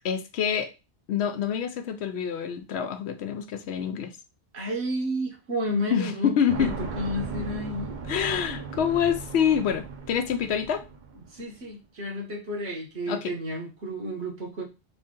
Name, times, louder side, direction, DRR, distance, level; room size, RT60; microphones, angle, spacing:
voice 1, 0.0-0.7 1.1-4.1 5.9-6.7 8.1-10.9 13.1-13.3, left 8 dB, 75° left, 0.8 m, -26 dB
voice 2, 4.5-8.0 11.3-14.6, equal, 70° right, 1.3 m, -31 dB
sound 1, 6.5-11.4, right 5 dB, 50° right, 0.7 m, -37 dB
3.3 x 2.7 x 3.6 m
omnidirectional pair, 1.1 m